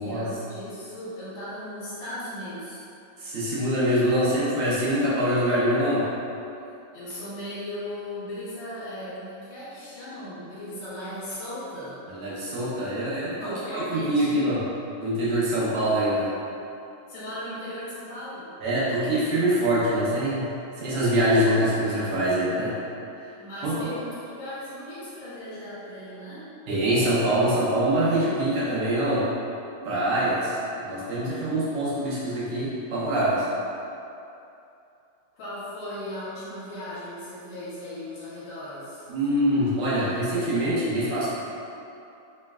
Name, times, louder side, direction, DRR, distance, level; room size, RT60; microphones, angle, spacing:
voice 1, 0.0-2.8 6.9-12.0 13.4-14.5 17.1-18.5 23.4-26.5 35.3-39.1, left 1 dB, 50° left, -12 dB, 1.9 m, -37 dB
voice 2, 3.2-6.1 12.1-14.6 15.0-16.3 18.6-22.7 23.6-23.9 26.7-29.3 29.8-33.5 39.1-41.3, right 1 dB, 75° right, -9 dB, 1.2 m, -24 dB
4.5 x 3.1 x 2.3 m, 2.7 s
omnidirectional pair, 3.4 m